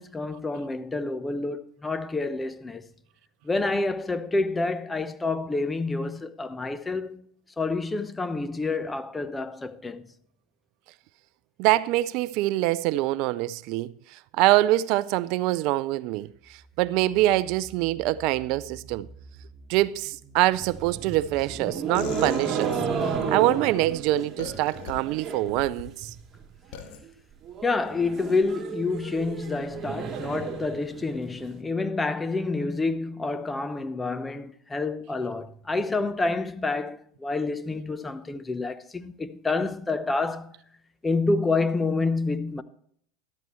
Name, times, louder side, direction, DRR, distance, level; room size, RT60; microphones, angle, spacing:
voice 1, 0.0-2.8 3.4-7.3 7.6-10.0 27.6-40.5 41.0-42.6, left 3 dB, 15° left, 0.9 m, -28 dB
voice 2, 11.6-19.1 19.7-22.8 23.3-26.1, right 16 dB, 60° right, 0.4 m, -24 dB
sound 1, 16.2-21.6, right 3 dB, 5° right, 4.1 m, -49 dB
sound 2, 20.5-25.6 25.9-26.4 26.7-26.8 27.0-27.1 27.4-31.4, right 6 dB, 35° right, 3.3 m, -33 dB
sound 3, 21.9-23.3 24.4-24.9 25.5-25.9 26.7-27.0, left 7 dB, 65° left, 2.0 m, -38 dB
13.0 x 12.5 x 3.1 m
hypercardioid pair, 90°, 0 cm